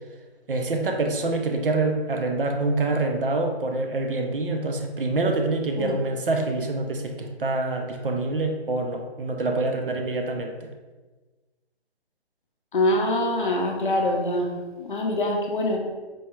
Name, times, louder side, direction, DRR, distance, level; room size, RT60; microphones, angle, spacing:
voice 1, 0.5-10.7, right 2 dB, 55° right, 4 dB, 0.5 m, -26 dB
voice 2, 12.7-14.5 14.8-15.8, left 1 dB, 50° left, 1 dB, 0.6 m, -24 dB
4.3 x 2.3 x 3.0 m, 1.3 s
hypercardioid pair, 170°, 33 cm